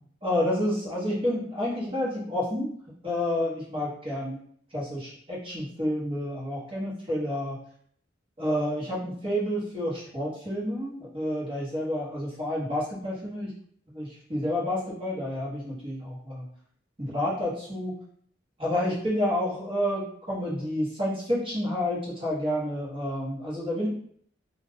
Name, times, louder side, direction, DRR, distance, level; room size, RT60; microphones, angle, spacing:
voice 1, 0.2-2.7 3.0-4.4 4.7-7.6 8.4-13.5 13.9-16.5 17.0-18.0 18.6-23.9, left 1 dB, 30° right, -7 dB, 1.1 m, -29 dB
2.4 x 2.3 x 3.5 m, 0.63 s
head